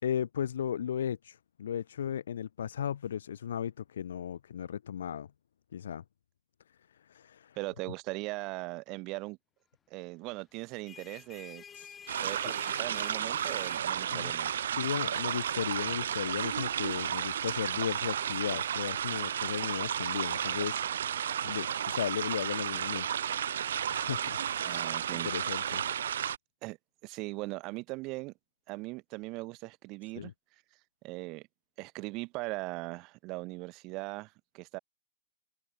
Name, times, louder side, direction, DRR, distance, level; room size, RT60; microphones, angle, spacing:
voice 1, 0.0-5.3 5.7-6.0 7.1-7.6 11.7-11.9 14.1-14.3 14.7-20.8 21.4-23.1 23.9-24.9 25.2-25.8 30.1-30.3, left 9 dB, 80° left, 3.3 m, -35 dB
voice 2, 7.6-9.4 9.9-11.6 12.2-14.6 24.6-25.7 26.6-26.8 27.0-28.3 28.7-30.3 31.0-31.5 31.8-34.8, right 23 dB, 25° right, 2.4 m, -39 dB
sound 1, 10.6-21.9, left 7 dB, 10° left, 4.0 m, -55 dB
sound 2, 12.1-26.4, right 9 dB, 80° right, 0.6 m, -33 dB
hypercardioid pair, 170°, 0 cm